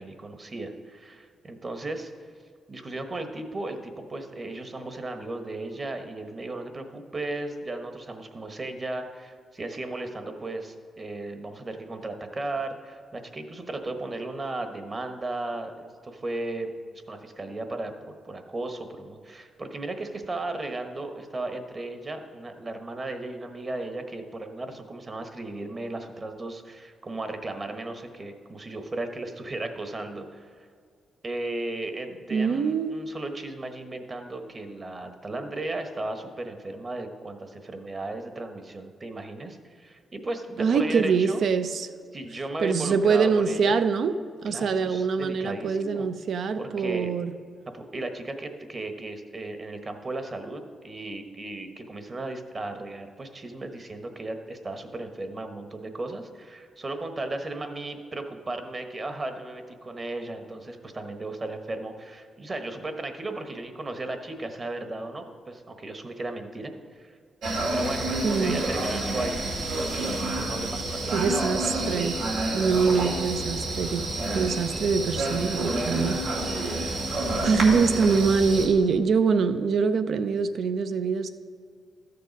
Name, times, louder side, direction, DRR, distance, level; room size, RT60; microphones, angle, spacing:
voice 1, 0.0-2.1 2.7-30.5 31.2-41.4 42.1-43.8 44.5-46.1 46.6-47.1 47.7-67.2 67.7-69.5 70.4-71.4 75.9-76.2, right 2 dB, 30° right, 7 dB, 1.1 m, -35 dB
voice 2, 32.3-33.0 40.6-41.9 42.6-44.1 44.4-47.3 68.2-68.6 71.1-72.2 72.5-76.2 76.7-76.8 77.4-81.3, right 5 dB, 65° right, 11 dB, 0.6 m, -24 dB
sound 1, 67.4-78.7, right 2 dB, 90° right, 2.2 m, -29 dB
13.0 x 6.8 x 5.2 m, 2.1 s
cardioid pair, 95°, 0 cm